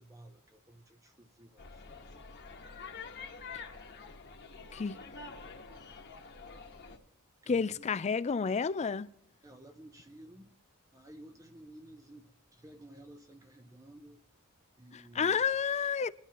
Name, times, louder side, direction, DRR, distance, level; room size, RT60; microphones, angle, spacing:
voice 1, 0.0-1.8 7.4-7.9 9.4-10.5 10.9-14.2 14.8-15.4, right 1 dB, 15° right, 0.7 m, -54 dB
sound 1, 1.6-7.0, left 4 dB, 50° left, 1.4 m, -47 dB
voice 2, 7.5-9.1 14.9-16.1, left 6 dB, 30° left, 0.4 m, -30 dB
21.5 x 11.5 x 3.0 m
head